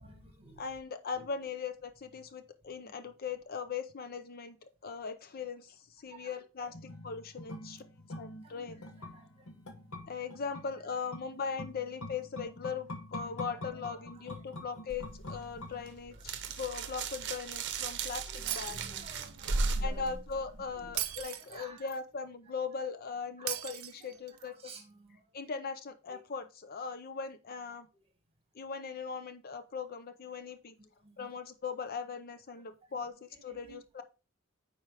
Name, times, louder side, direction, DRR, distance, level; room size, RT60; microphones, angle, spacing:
voice 1, 0.0-0.7 1.2-1.5 2.2-2.3 2.7-3.1 6.0-6.7 8.1-9.6 10.1-11.1 11.4-11.5 12.4-12.8 13.1-14.7 15.8-16.7 17.9-21.9 22.2-22.3 23.4-23.6 23.9-25.5 26.1-26.2 27.5-27.6 28.0-28.1 30.8-31.3 32.5-34.0, right 2 dB, 30° right, 5 dB, 1.8 m, -56 dB
voice 2, 0.6-4.6 4.8-6.7 7.0-7.8 8.2-8.8 10.1-18.8 19.8-24.5 25.3-27.9 28.5-30.8 31.2-33.1 33.4-34.0, left 5 dB, 45° left, 10 dB, 0.6 m, -39 dB
sound 1, 6.7-16.3 16.6-16.7, left 1 dB, 85° left, 1.1 m, -46 dB
sound 2, 14.9-21.2, right 3 dB, 60° right, 0.8 m, -36 dB
Shatter, 18.5-19.4 21.0-22.0 23.5-24.5, right 14 dB, 80° right, 0.6 m, -38 dB
9.1 x 4.6 x 3.4 m, 0.31 s
head